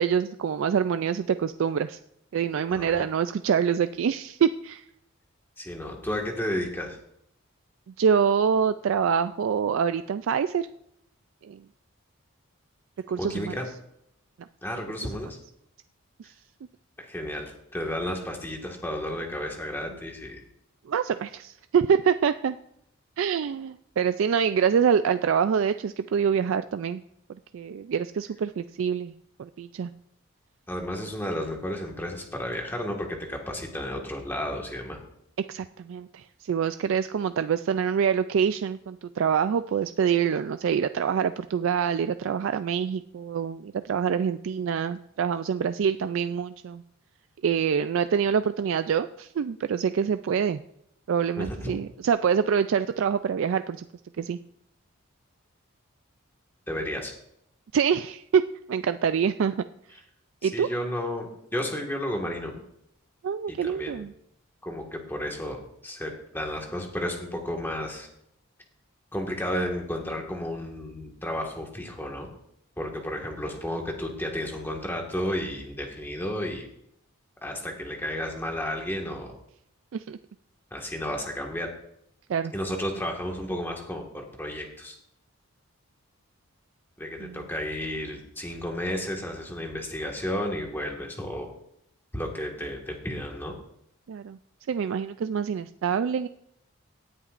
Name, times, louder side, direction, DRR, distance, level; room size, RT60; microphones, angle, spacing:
voice 1, 0.0-2.0 2.3-4.8 8.0-10.7 11.5-11.6 13.1-13.5 20.9-22.6 23.2-27.0 27.5-29.1 29.4-29.9 35.5-46.8 47.4-50.6 51.1-53.8 54.2-54.4 57.7-58.4 58.7-59.6 60.4-60.7 63.2-64.1 79.9-80.2 82.3-82.5 87.2-87.4 94.1-94.4 94.7-96.3, right 7 dB, 65° right, 11 dB, 0.3 m, -25 dB
voice 2, 2.7-3.0 5.6-7.0 13.2-13.7 14.6-15.4 17.0-20.4 30.7-35.0 51.4-51.8 56.7-57.1 60.4-62.5 63.5-64.0 64.6-68.1 69.1-72.3 72.8-76.7 77.4-79.3 80.7-81.7 82.5-84.9 87.0-91.5 92.1-93.5, left 1 dB, 10° left, 1 dB, 1.7 m, -32 dB
18.0 x 10.0 x 2.5 m, 0.76 s
head